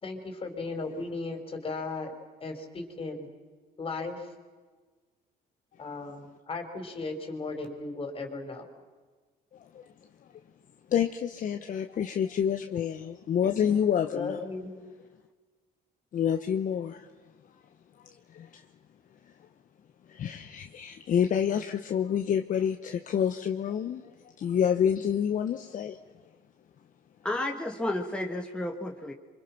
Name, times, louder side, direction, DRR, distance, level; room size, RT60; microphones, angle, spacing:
voice 1, 0.0-2.1 2.4-3.3 3.8-4.3 5.8-8.7 14.1-14.7, left 3 dB, 35° left, 5 dB, 4.4 m, -36 dB
voice 2, 9.5-9.8 10.9-14.5 16.1-17.1 18.3-18.6 20.1-24.1 24.4-26.0, left 8 dB, 50° left, 6 dB, 1.1 m, -28 dB
voice 3, 27.2-29.1, left 1 dB, 5° left, 1 dB, 2.0 m, -32 dB
27.0 x 25.0 x 6.0 m, 1.4 s
cardioid pair, 110°, 17 cm